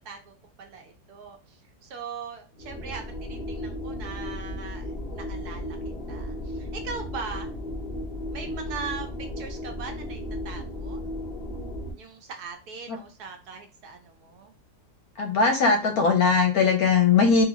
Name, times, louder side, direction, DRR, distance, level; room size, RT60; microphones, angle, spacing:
voice 1, 0.0-1.6 1.8-5.8 6.1-7.5 8.3-11.0 11.9-14.5, right 5 dB, 65° right, 4 dB, 1.1 m, -40 dB
sound 1, 2.5-11.9, left 1 dB, 45° left, 0.5 m, -35 dB
voice 2, 15.2-17.4, left 5 dB, 65° left, 4 dB, 1.0 m, -20 dB
3.6 x 3.0 x 3.5 m, 0.33 s
omnidirectional pair, 2.0 m